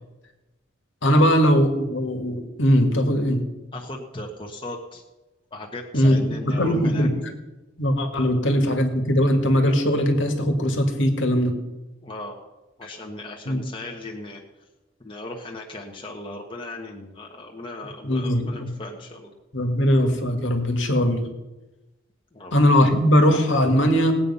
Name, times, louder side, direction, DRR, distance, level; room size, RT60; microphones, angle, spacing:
voice 1, 1.0-3.4 5.9-7.1 7.8-11.5 12.8-12.9 13.5-13.6 18.0-18.7 19.5-21.2 22.5-24.1, equal, 80° left, 5 dB, 2.0 m, -20 dB
voice 2, 3.7-5.0 5.5-7.1 8.1-8.3 12.0-12.4 12.8-14.4 15.0-19.3 22.3-22.5, left 2 dB, 25° left, 0 dB, 1.3 m, -37 dB
18.5 x 8.7 x 5.6 m, 1.1 s
head